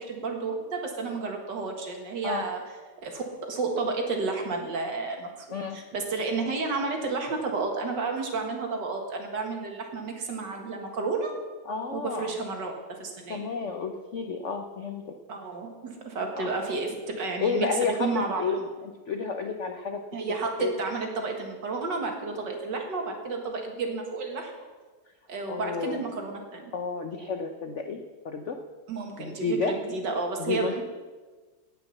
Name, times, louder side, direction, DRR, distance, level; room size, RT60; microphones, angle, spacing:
voice 1, 0.1-2.6 3.0-11.3 11.9-12.7 13.0-13.4 15.3-18.7 20.1-24.5 25.3-26.7 28.9-30.8, right 4 dB, 60° right, 2 dB, 2.3 m, -31 dB
voice 2, 11.7-12.3 13.3-15.1 16.4-16.5 17.4-18.1 18.4-18.6 18.8-20.0 20.6-20.7 25.5-26.0 26.7-28.6 29.2-29.7 30.4-30.8, left 5 dB, 60° left, 5 dB, 0.7 m, -31 dB
17.5 x 6.0 x 7.0 m, 1.4 s
omnidirectional pair, 2.2 m